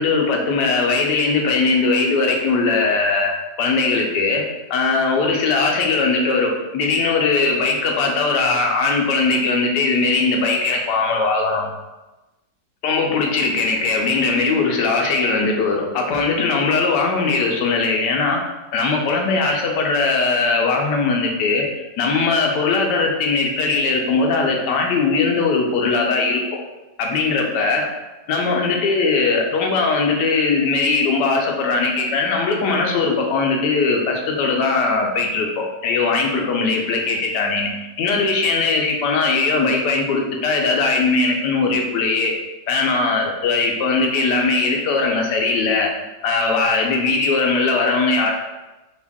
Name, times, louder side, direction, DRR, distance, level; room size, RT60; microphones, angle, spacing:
voice 1, 0.0-3.3 3.6-4.4 4.7-11.7 12.8-18.4 18.7-21.6 22.0-26.6 27.0-27.9 28.3-37.7 38.0-42.3 42.7-45.9 46.2-48.3, left 4 dB, 75° left, 1 dB, 1.2 m, -19 dB
3.5 x 2.3 x 3.4 m, 1.1 s
omnidirectional pair, 1.8 m